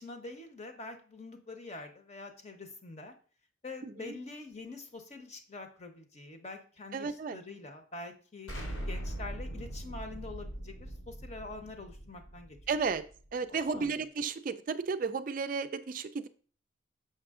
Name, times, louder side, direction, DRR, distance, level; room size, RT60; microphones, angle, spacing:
voice 1, 0.0-3.1 3.6-8.5 8.9-12.6 13.5-13.9, left 3 dB, 35° left, 6 dB, 0.9 m, -45 dB
voice 2, 3.8-4.1 6.9-7.4 12.7-13.0 13.3-16.3, right 5 dB, 45° right, 11 dB, 0.3 m, -33 dB
Explosion, 8.5-13.3, right 1 dB, 90° left, 2.7 m, -41 dB
6.7 x 5.8 x 3.6 m, 0.41 s
head